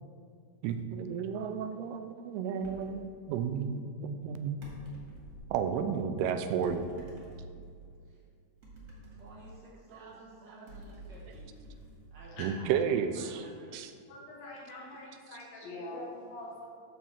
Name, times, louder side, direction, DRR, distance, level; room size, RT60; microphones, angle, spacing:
voice 1, 0.6-4.6 5.5-6.8 9.9-10.1 12.4-13.5 13.7-13.9 15.3-15.4, right 7 dB, 80° right, 8 dB, 2.5 m, -32 dB
sound 1, 2.6-3.1 4.6-5.6 6.6-7.9 8.6-10.0 10.7-12.6, right 1 dB, 35° right, 2.1 m, -49 dB
voice 2, 9.1-11.5 12.1-13.7, right 1 dB, 65° right, -5 dB, 1.1 m, -53 dB
voice 3, 14.1-16.7, left 1 dB, 65° left, -3 dB, 2.9 m, -44 dB
10.0 x 4.7 x 7.1 m, 2.2 s
omnidirectional pair, 4.8 m